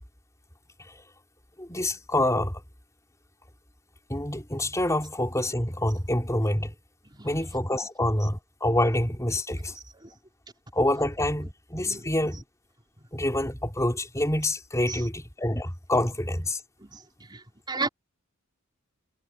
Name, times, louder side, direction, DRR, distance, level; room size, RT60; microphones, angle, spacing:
voice 1, 1.6-2.6 4.1-6.7 7.2-9.7 10.7-12.4 13.1-16.6, left 1 dB, 15° left, 4.4 m, -27 dB
voice 2, 7.2-7.3 10.0-10.1 11.8-12.0 14.9-15.0 16.9-17.0 17.3-17.4 17.7-17.9, right 3 dB, 20° right, 4.3 m, -32 dB
head